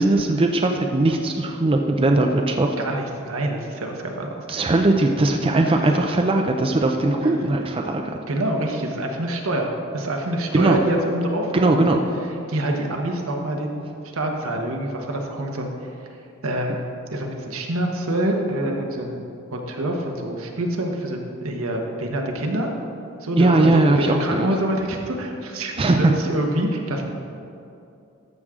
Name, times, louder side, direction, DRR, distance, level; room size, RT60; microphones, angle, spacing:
voice 1, 0.0-2.7 4.5-8.2 10.5-10.8 11.5-12.0 23.4-24.5 25.8-26.1, right 2 dB, 25° right, 3 dB, 0.4 m, -19 dB
voice 2, 2.8-4.7 5.7-5.8 7.2-7.3 8.3-11.8 12.5-13.8 14.1-15.7 16.4-16.8 17.1-19.2 19.5-22.7 23.2-27.0, right 1 dB, 80° right, 2 dB, 1.2 m, -26 dB
13.5 x 6.4 x 3.7 m, 2.7 s
head